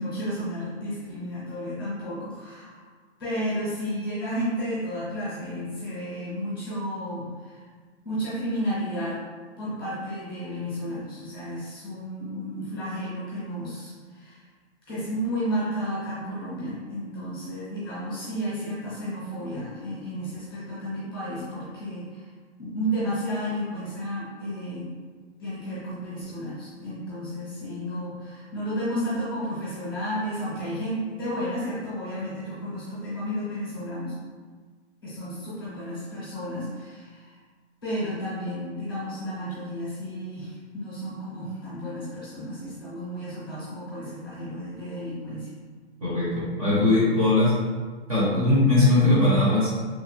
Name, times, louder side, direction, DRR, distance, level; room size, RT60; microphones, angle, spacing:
voice 1, 0.0-2.8 3.2-7.7 8.0-9.2 9.6-14.4 14.9-22.3 22.6-24.9 25.4-34.2 35.0-37.4 37.8-45.5, equal, 20° left, -9 dB, 0.6 m, -32 dB
voice 2, 46.0-47.5 48.1-49.7, left 2 dB, 30° right, -7 dB, 0.5 m, -20 dB
2.9 x 2.2 x 2.7 m, 1.5 s
hypercardioid pair, 170°, 34 cm